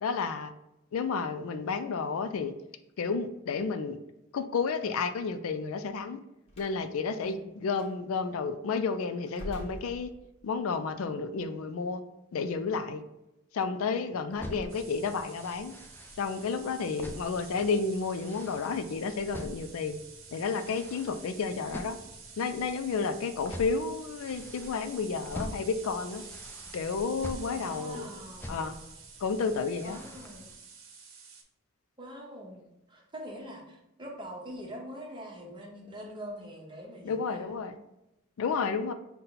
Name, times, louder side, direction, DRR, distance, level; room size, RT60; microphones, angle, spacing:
voice 1, 0.0-0.5 0.9-2.5 3.0-4.0 4.3-6.2 6.6-10.1 10.4-12.0 12.3-13.0 13.5-15.7 16.2-20.0 20.3-22.0 22.4-26.2 26.7-28.1 28.5-28.7 29.2-30.0 37.0-37.8 38.4-38.9, left 5 dB, 80° left, 9 dB, 0.4 m, -31 dB
Slam, 6.5-6.8 7.7-7.9 9.3-10.5, equal, 30° left, 1.0 m, -43 dB
voice 2, 7.2-7.5 14.4-14.7 27.5-28.9 29.8-30.5 32.0-37.6, equal, 20° right, -1 dB, 0.8 m, -44 dB
sound 1, 14.3-30.5, left 1 dB, 10° left, 0.3 m, -46 dB
sound 2, 14.7-31.4, right 5 dB, 70° right, 0.8 m, -49 dB
5.6 x 2.2 x 3.8 m, 0.89 s
head